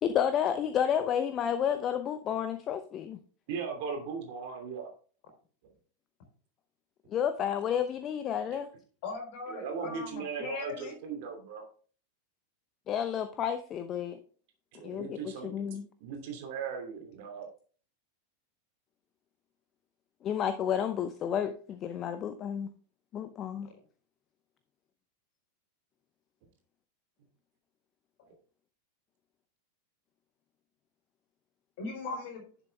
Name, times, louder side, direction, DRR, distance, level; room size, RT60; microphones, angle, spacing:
voice 1, 0.0-3.2 7.1-8.7 12.9-14.2 14.8-15.9 20.2-22.7 23.1-23.7, left 9 dB, 30° left, 0.7 m, -31 dB
voice 2, 3.5-4.9 8.5-8.6 9.5-11.6 14.7-15.6 16.0-17.5, right 6 dB, 50° right, 2.8 m, -38 dB
voice 3, 9.0-11.0 28.2-28.3 31.8-32.5, left 3 dB, 50° left, 4.3 m, -39 dB
11.0 x 7.0 x 3.5 m
figure-of-eight pair, 90°, 0 cm